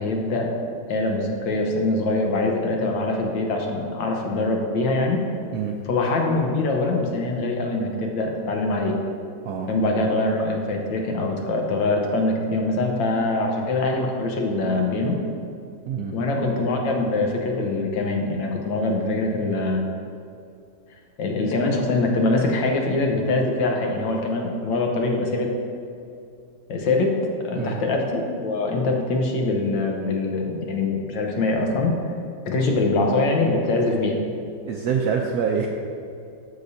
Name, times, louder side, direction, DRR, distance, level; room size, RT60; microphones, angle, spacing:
voice 1, 0.0-5.2 5.9-9.0 9.7-15.2 16.1-19.8 21.2-25.5 26.7-27.2 27.4-32.0 32.5-34.2, left 2 dB, 75° left, 1 dB, 1.6 m, -23 dB
voice 2, 15.9-16.2 27.5-27.8 34.6-35.7, right 6 dB, 75° right, 1 dB, 0.9 m, -25 dB
13.0 x 4.9 x 2.7 m, 2.5 s
omnidirectional pair, 2.1 m